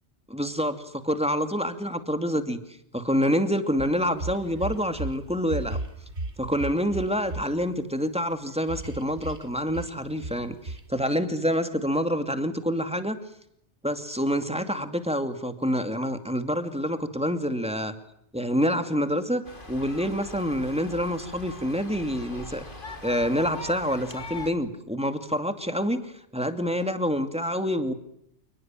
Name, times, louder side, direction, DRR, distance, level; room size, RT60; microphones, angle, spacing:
voice 1, 0.3-2.6 2.9-5.8 6.4-13.2 13.8-18.0 18.3-19.4 19.7-22.7 23.0-27.9, equal, 5° right, 8 dB, 2.4 m, -27 dB
sound 1, 3.8-5.2 5.4-7.4 8.7-9.4 9.7-9.9 10.2-10.4 10.7-10.8, right 2 dB, 80° right, 2.9 m, -34 dB
sound 2, 19.4-24.5, left 3 dB, 50° left, 3.6 m, -41 dB
29.0 x 20.0 x 7.5 m, 0.74 s
omnidirectional pair, 1.2 m